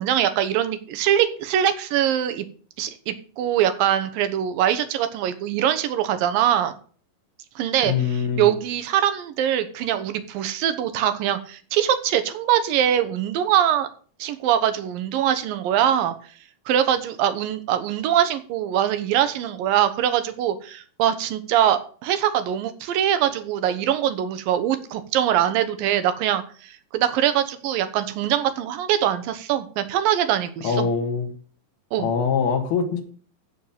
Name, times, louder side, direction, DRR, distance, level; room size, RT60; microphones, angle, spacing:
voice 1, 0.0-2.5 2.8-6.7 7.6-13.9 14.2-16.1 16.7-30.9 31.9-32.1, right 10 dB, 75° right, 11 dB, 2.7 m, -23 dB
voice 2, 7.9-8.5 30.6-31.3 32.0-33.0, left 6 dB, 85° left, 3 dB, 3.6 m, -23 dB
13.5 x 4.5 x 7.2 m, 0.43 s
omnidirectional pair, 4.3 m